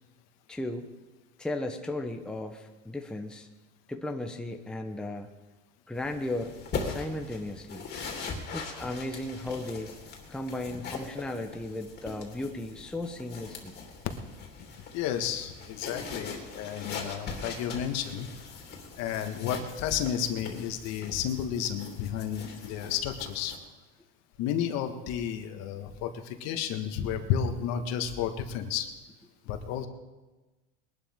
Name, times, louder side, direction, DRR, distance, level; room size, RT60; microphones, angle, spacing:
voice 1, 0.5-0.9 1.4-3.5 3.9-5.3 5.9-6.5 6.8-7.9 8.5-10.0 10.3-13.7, left 1 dB, 5° left, 4 dB, 0.9 m, -35 dB
sound 1, 5.9-23.6, left 4 dB, 30° left, 3.0 m, -41 dB
voice 2, 14.9-18.3 19.0-23.6 24.4-28.9 29.4-29.9, left 9 dB, 55° left, 7 dB, 1.6 m, -32 dB
21.5 x 12.0 x 3.7 m, 1.2 s
supercardioid pair, 125°, 31 cm